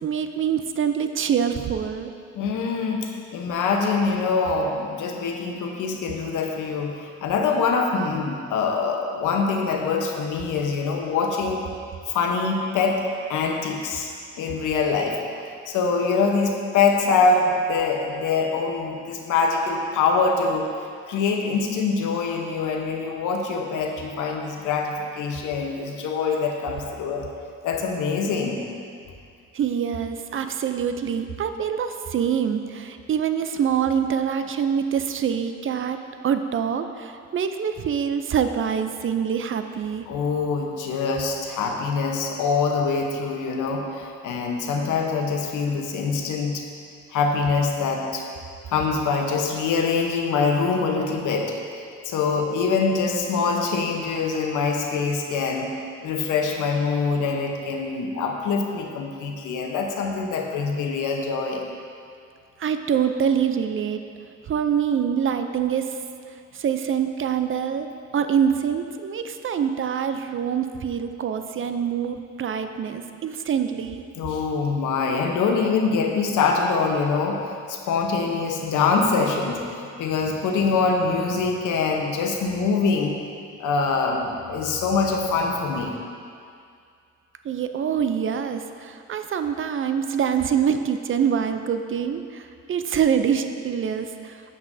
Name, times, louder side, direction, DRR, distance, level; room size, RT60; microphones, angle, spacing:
voice 1, 0.0-2.1 29.5-36.0 36.2-40.1 62.6-64.1 64.5-66.0 66.5-67.9 68.1-74.0 87.4-94.6, right 8 dB, 45° right, 8 dB, 0.5 m, -25 dB
voice 2, 2.3-11.7 12.1-13.0 13.3-14.1 14.4-15.2 15.7-20.7 21.1-27.3 27.6-28.6 40.1-46.6 47.1-48.2 48.7-51.6 52.0-55.7 56.0-61.6 74.1-83.2 83.6-86.0, left 4 dB, 80° left, 2 dB, 1.0 m, -24 dB
9.4 x 7.9 x 2.7 m, 2.3 s
cardioid pair, 90°, 30 cm